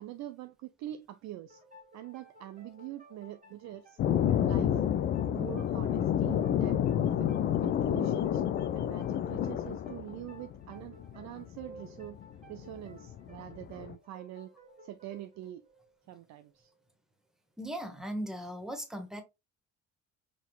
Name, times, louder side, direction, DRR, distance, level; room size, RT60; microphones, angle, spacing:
voice 1, 0.0-1.6 1.9-4.0 4.4-4.8 5.3-7.3 7.6-8.4 8.7-12.2 12.5-14.5 14.8-15.6 16.1-16.7, right 13 dB, 40° right, 0.5 m, -44 dB
sound 1, 1.5-16.8, right 1 dB, 15° right, 1.8 m, -55 dB
sound 2, 4.0-13.9, left 10 dB, 25° left, 0.3 m, -29 dB
voice 2, 17.6-19.2, right 1 dB, ahead, 1.2 m, -38 dB
5.4 x 3.7 x 2.3 m
figure-of-eight pair, 50°, 42 cm